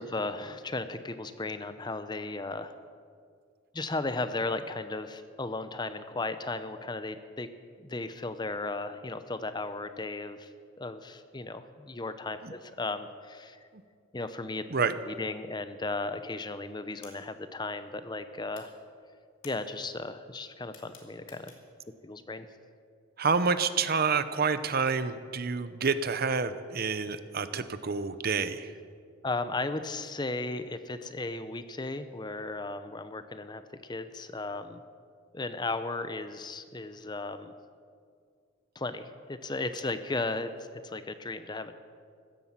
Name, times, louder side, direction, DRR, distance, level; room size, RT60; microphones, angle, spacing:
voice 1, 0.0-2.8 3.7-7.5 7.8-10.5 10.8-13.6 14.1-14.6 15.1-18.7 19.4-21.5 22.0-22.5 29.2-34.8 35.3-37.5 38.8-41.7, left 2 dB, 20° left, 11 dB, 0.6 m, -35 dB
sound 1, 17.0-18.2 18.5-21.9, left 5 dB, 70° left, 2.6 m, -55 dB
voice 2, 23.2-28.7, right 5 dB, 45° right, 12 dB, 0.7 m, -28 dB
15.5 x 12.5 x 7.4 m, 2.1 s
head